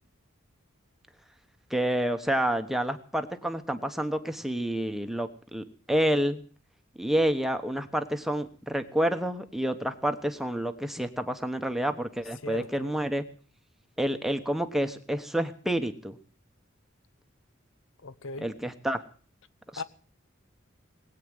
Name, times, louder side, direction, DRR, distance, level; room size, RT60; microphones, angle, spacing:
voice 1, 1.7-6.4 7.0-13.2 14.0-16.2 18.4-19.0 19.7-19.8, right 1 dB, ahead, 1.1 m, -29 dB
voice 2, 12.4-12.9 18.0-18.5 19.8-19.9, left 3 dB, 75° left, 0.9 m, -38 dB
20.5 x 8.7 x 7.9 m
head